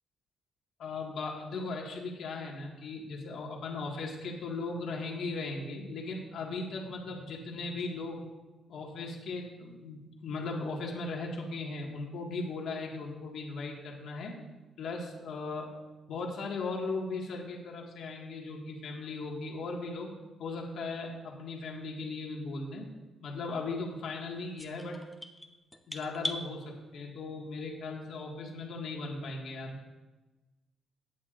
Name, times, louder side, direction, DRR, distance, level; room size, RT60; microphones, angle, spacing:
voice 1, 0.8-8.2 8.7-14.4 14.8-15.7 16.1-20.1 20.4-22.9 23.2-25.0 25.9-29.7, left 3 dB, 70° left, -1 dB, 1.8 m, -37 dB
sound 1, 24.6-26.4, left 1 dB, 5° left, 0.9 m, -39 dB
17.0 x 9.5 x 2.6 m, 1.1 s
cardioid pair, 120°, 0 cm